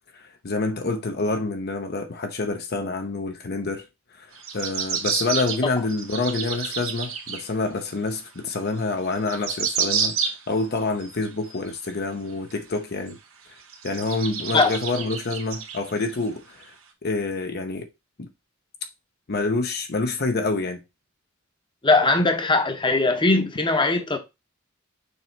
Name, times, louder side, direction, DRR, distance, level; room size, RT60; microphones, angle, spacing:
voice 1, 0.1-3.9 4.2-4.3 4.5-13.2 13.8-16.7 17.0-17.9 18.2-18.3 19.3-20.8, left 3 dB, 50° left, 0.8 m, -27 dB
sound 1, 4.3-7.5 7.9-8.0 8.8-8.9 9.0-10.6 11.0-11.9 12.5-12.6 13.1-13.2 13.7-16.1 16.6-16.7, right 7 dB, 85° right, 1.5 m, -29 dB
voice 2, 21.8-24.2, left 3 dB, 25° left, 0.9 m, -20 dB
6.7 x 3.1 x 4.5 m
head